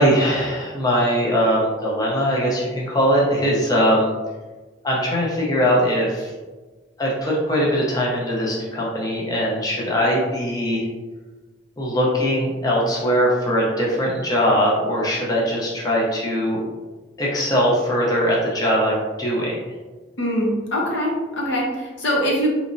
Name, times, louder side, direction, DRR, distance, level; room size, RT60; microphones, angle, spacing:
voice 1, 0.0-4.1 4.8-6.3 7.0-10.8 11.8-16.6 17.2-19.6, equal, 20° left, -4 dB, 0.7 m, -21 dB
voice 2, 20.2-22.5, equal, 75° left, -2 dB, 0.9 m, -23 dB
4.2 x 3.0 x 2.6 m, 1.3 s
head